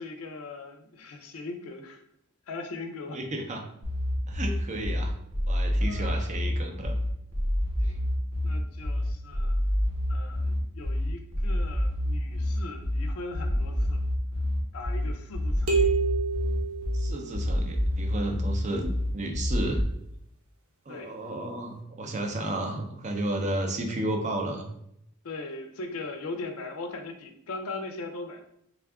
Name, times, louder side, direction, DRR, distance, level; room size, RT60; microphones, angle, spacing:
voice 1, 0.0-2.0 2.5-3.2 5.8-6.4 7.8-8.0 8.4-9.6 10.1-14.0 14.7-15.9 20.9-21.1 25.2-28.5, left 3 dB, 75° left, 6 dB, 0.5 m, -39 dB
voice 2, 3.1-3.7 4.3-5.1 5.5-6.9 16.9-19.8 20.9-24.6, right 1 dB, 35° right, 3 dB, 0.5 m, -32 dB
sound 1, 3.8-19.8, left 1 dB, 90° right, 1.2 m, -28 dB
sound 2, 15.7-17.6, right 5 dB, 70° right, 0.9 m, -28 dB
3.5 x 2.3 x 3.5 m, 0.74 s
head